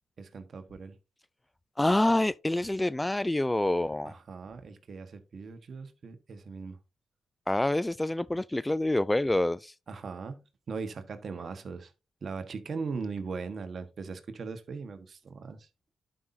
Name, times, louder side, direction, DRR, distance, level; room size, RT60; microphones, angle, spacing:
voice 1, 0.2-0.9 4.0-6.8 9.9-11.9 12.2-15.7, right 4 dB, 55° right, 1.4 m, -39 dB
voice 2, 1.8-4.1 7.5-9.7, left 1 dB, 15° left, 0.3 m, -27 dB
11.0 x 5.5 x 2.7 m
supercardioid pair, 55°, 0 cm